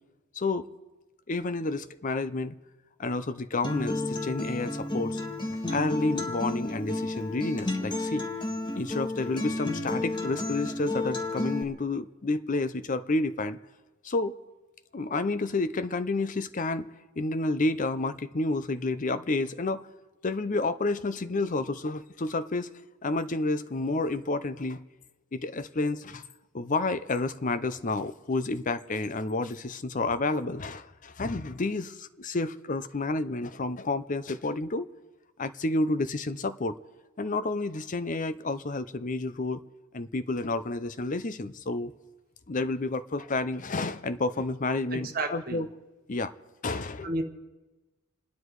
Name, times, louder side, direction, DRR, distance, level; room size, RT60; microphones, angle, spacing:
voice 1, 0.4-0.7 1.3-2.5 3.0-5.2 5.7-8.3 8.7-13.6 14.0-14.4 14.9-16.9 17.2-19.9 20.2-22.7 23.0-24.8 25.3-26.2 26.5-34.9 35.4-36.8 37.2-39.6 39.9-41.9 42.5-45.7 46.1-46.3 46.6-47.1, left 2 dB, 35° left, 0.6 m, -30 dB
Acoustic guitar, 3.6-11.6, left 2 dB, 20° left, 1.7 m, -32 dB
voice 2, 44.9-45.6 46.7-47.2, right 2 dB, 45° right, 1.3 m, -33 dB
28.5 x 9.9 x 4.8 m
head